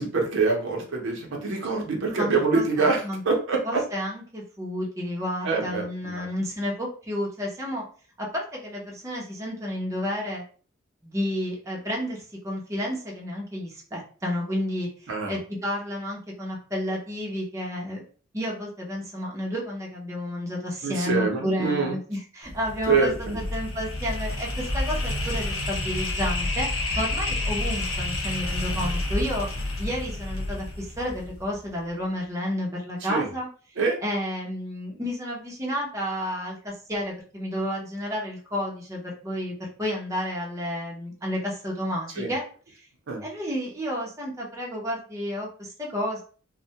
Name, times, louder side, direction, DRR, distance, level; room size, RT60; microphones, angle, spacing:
voice 1, 0.0-3.8 5.4-6.3 15.1-15.3 20.8-21.9 22.9-23.4 33.1-33.3 33.8-34.0 42.2-42.3 43.1-43.2, right 4 dB, 65° right, 0 dB, 0.6 m, -25 dB
voice 2, 2.2-3.2 3.6-7.8 8.2-10.4 11.0-18.0 18.3-26.7 27.0-29.5 29.8-33.5 34.0-42.8 43.2-46.2, equal, 15° right, -3 dB, 0.6 m, -31 dB
sound 1, 22.4-31.6, left 2 dB, 80° left, 0.6 m, -29 dB
2.2 x 2.1 x 2.7 m, 0.41 s
head